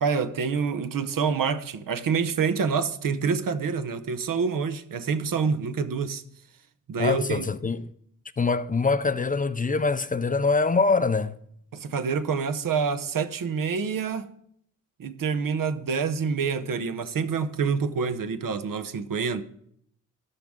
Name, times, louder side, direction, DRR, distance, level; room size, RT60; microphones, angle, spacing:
voice 1, 0.0-6.2 6.9-7.5 11.7-14.3 15.0-19.4, right 5 dB, 85° right, 0.8 m, -27 dB
voice 2, 7.0-7.9 8.4-11.4, left 4 dB, 25° left, 0.4 m, -24 dB
13.5 x 11.5 x 3.7 m
wide cardioid pair, 135°, 32 cm